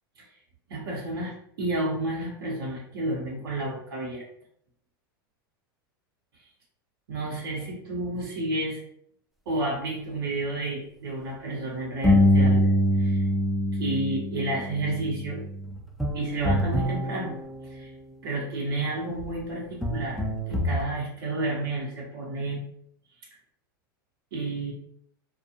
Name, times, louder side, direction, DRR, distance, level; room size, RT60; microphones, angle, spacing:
voice 1, 0.7-4.2 7.1-8.8 9.5-13.2 13.8-15.4 16.1-17.4 17.7-17.9 18.2-22.6 24.3-24.7, right 2 dB, 75° right, -3 dB, 0.9 m, -31 dB
sound 1, 12.0-18.0 19.2-19.3 19.8-20.8, left 1 dB, ahead, 0.4 m, -25 dB
2.3 x 2.3 x 2.7 m, 0.69 s
hypercardioid pair, 100°, 12 cm